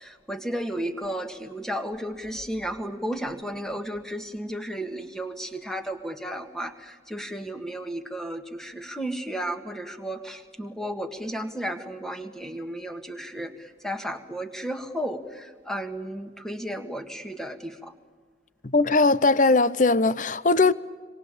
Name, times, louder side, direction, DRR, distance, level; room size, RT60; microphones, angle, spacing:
voice 1, 0.0-17.9, right 1 dB, 5° left, 1.8 m, -33 dB
voice 2, 18.6-20.7, left 3 dB, 45° left, 0.7 m, -20 dB
26.5 x 25.5 x 8.6 m
head